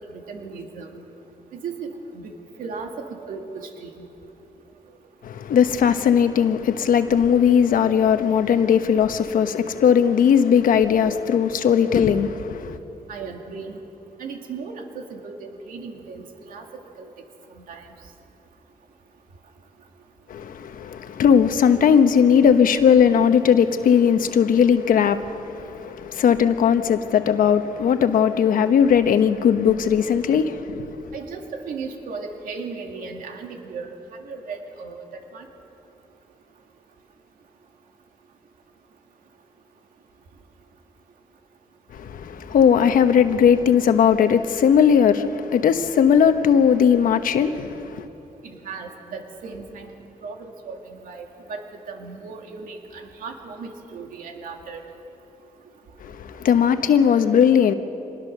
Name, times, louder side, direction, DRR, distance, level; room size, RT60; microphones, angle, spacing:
voice 1, 0.1-0.9 1.5-2.3 2.6-4.1 13.1-13.8 14.2-16.6 17.0-17.1 17.6-17.9 31.1-34.0 34.2-35.0 35.3-35.4 48.4-49.9 50.2-51.6 51.9-54.8, right 4 dB, 90° right, 2.3 m, -36 dB
voice 2, 5.2-12.8 20.3-31.0 41.9-48.0 56.0-57.7, left 7 dB, 85° left, 1.1 m, -18 dB
25.5 x 20.0 x 6.7 m
cardioid pair, 70°, 14 cm